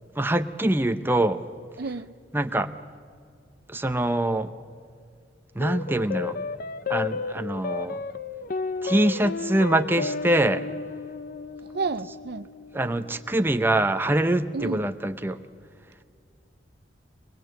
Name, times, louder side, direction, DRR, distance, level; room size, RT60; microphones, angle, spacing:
voice 1, 0.2-1.4 2.3-2.7 3.7-4.5 5.6-6.4 6.9-8.0 8.8-10.6 12.7-15.4, right 1 dB, 10° right, 8 dB, 0.7 m, -24 dB
voice 2, 1.8-2.1 11.7-12.5 14.5-14.8, right 4 dB, 60° right, 14 dB, 0.5 m, -30 dB
sound 1, 5.6-14.2, left 4 dB, 50° left, 0.7 m, -33 dB
24.0 x 20.5 x 7.6 m, 2.2 s
head